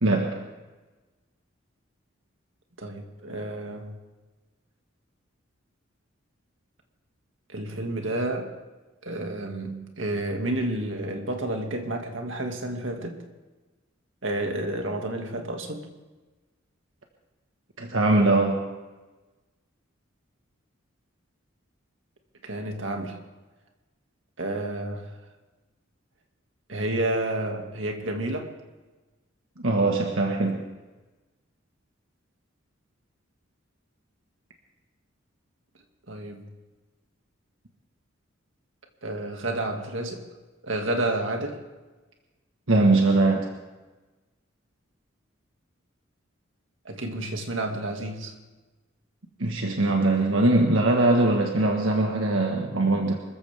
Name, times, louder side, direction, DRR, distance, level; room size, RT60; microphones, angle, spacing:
voice 1, 0.0-0.4 17.8-18.6 29.6-30.6 42.7-43.5 49.4-53.2, right 2 dB, 85° right, 2 dB, 1.6 m, -21 dB
voice 2, 2.8-4.0 7.5-8.5 9.0-13.2 14.2-15.9 22.4-23.2 24.4-25.1 26.7-28.5 36.1-36.5 39.0-40.2 40.6-41.6 46.8-48.3, right 1 dB, 70° right, 3 dB, 2.2 m, -30 dB
25.5 x 14.5 x 3.6 m, 1.2 s
head